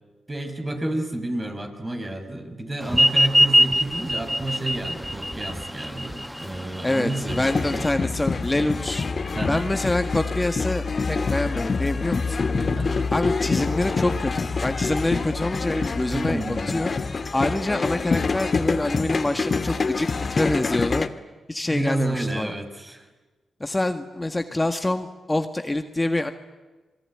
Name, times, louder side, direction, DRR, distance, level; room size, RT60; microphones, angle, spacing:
voice 1, 0.3-7.9 9.3-9.7 12.5-12.9 16.1-16.9 21.7-23.1, right 2 dB, 30° right, 5 dB, 5.9 m, -30 dB
sound 1, 2.9-7.9, equal, ahead, 1.4 m, -22 dB
voice 2, 6.8-9.1 9.5-12.4 13.1-16.4 16.7-16.9 17.3-21.1 21.5-22.5 23.6-26.3, left 2 dB, 20° left, 7 dB, 1.8 m, -26 dB
sound 2, 7.3-21.1, left 4 dB, 50° left, 1.8 m, -26 dB
27.0 x 20.5 x 10.0 m, 1.2 s
supercardioid pair, 45°, 0 cm